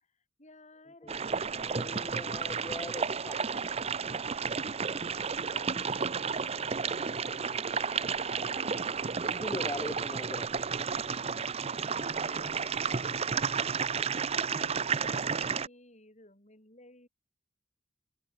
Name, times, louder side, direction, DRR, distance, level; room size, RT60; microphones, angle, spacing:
voice 1, 0.0-9.3 11.0-17.1, left 2 dB, 35° left, 6.4 m, -56 dB
voice 2, 1.0-3.4 9.3-10.5, left 1 dB, 15° left, 0.6 m, -40 dB
sound 1, 1.1-15.7, right 5 dB, 30° right, 0.6 m, -32 dB
head